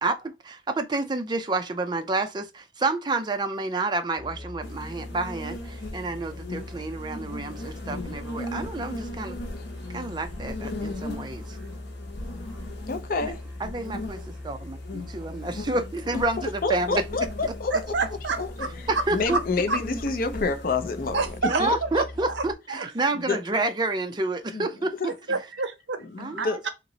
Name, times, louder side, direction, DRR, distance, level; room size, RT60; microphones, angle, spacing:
voice 1, 0.0-9.4 9.9-11.6 13.2-13.3 13.6-14.2 14.4-17.0 18.9-19.4 21.5-24.9 26.2-26.6, right 2 dB, 25° right, 0.4 m, -29 dB
Musical instrument, 4.1-22.5, left 1 dB, 5° right, 1.6 m, -41 dB
sound 1, 4.6-21.4, left 1 dB, 80° left, 0.9 m, -39 dB
voice 2, 12.9-13.4 16.6-17.7 18.4-22.0 23.1-23.4 24.5-24.6 25.0-25.4 26.0-26.7, left 3 dB, 50° left, 0.5 m, -29 dB
voice 3, 17.7-18.7 19.3-19.4 19.7-19.8 21.1-21.6 22.3-22.4 22.7-22.8 25.3-26.7, right 4 dB, 75° right, 0.7 m, -28 dB
3.0 x 2.9 x 3.8 m
head